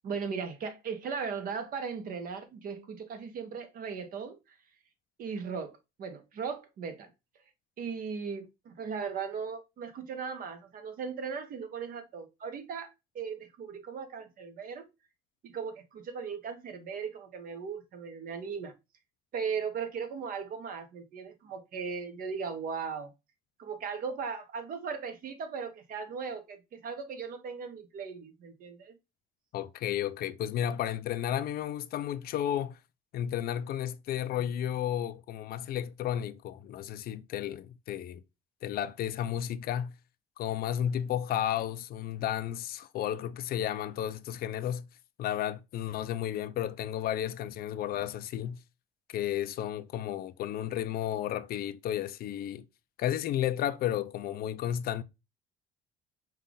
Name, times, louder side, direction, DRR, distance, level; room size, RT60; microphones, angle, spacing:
voice 1, 0.0-4.4 5.2-7.1 7.8-14.9 15.4-18.7 19.3-23.1 23.6-28.9, right 6 dB, 55° right, 1.1 m, -38 dB
voice 2, 29.5-32.8 33.1-38.2 38.6-39.9 40.4-44.9 45.2-48.6 49.1-52.6 53.0-55.0, left 11 dB, 65° left, 0.5 m, -33 dB
5.5 x 2.4 x 3.8 m
cardioid pair, 110°, 17 cm